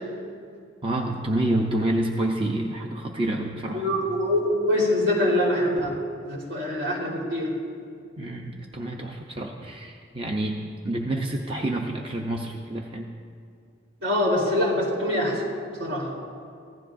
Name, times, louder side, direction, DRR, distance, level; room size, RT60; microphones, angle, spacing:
voice 1, 0.8-3.9 8.2-13.1, right 1 dB, 30° right, 1 dB, 0.7 m, -28 dB
voice 2, 3.7-5.9 6.3-7.5 14.0-15.4 15.8-16.2, left 1 dB, 70° right, -3 dB, 3.9 m, -24 dB
25.0 x 15.5 x 2.6 m, 2.3 s
head